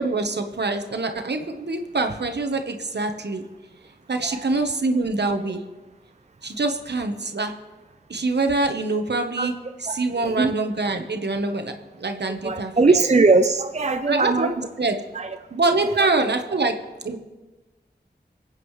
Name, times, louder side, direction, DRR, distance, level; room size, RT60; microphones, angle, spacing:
voice 1, 0.0-3.4 4.1-5.6 6.4-7.5 8.1-9.5 9.8-11.7 12.0-13.0 14.1-14.5 14.8-15.0 15.5-16.7 17.0-17.2, right 3 dB, 70° right, 5 dB, 1.1 m, -24 dB
voice 2, 9.9-10.5 12.4-14.5 15.1-15.4 15.8-16.1, right 3 dB, 40° right, 7 dB, 0.6 m, -21 dB
25.0 x 8.4 x 3.2 m, 1.2 s
wide cardioid pair, 45°, 18 cm